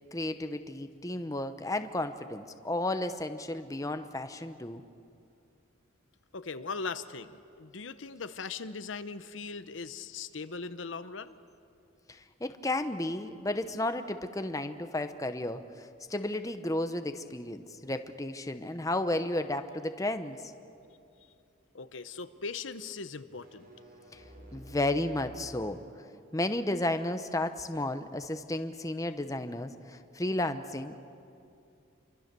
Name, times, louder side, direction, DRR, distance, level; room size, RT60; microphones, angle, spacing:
voice 1, 0.1-4.8 12.1-20.5 24.1-24.2 24.5-25.8 26.3-31.0, left 1 dB, 15° left, 9 dB, 0.9 m, -33 dB
voice 2, 6.3-11.3 21.7-23.7, left 4 dB, 70° left, 12 dB, 0.9 m, -39 dB
sound 1, 23.2-26.0, equal, 45° right, 4.0 m, -51 dB
28.0 x 24.5 x 6.9 m, 2.5 s
head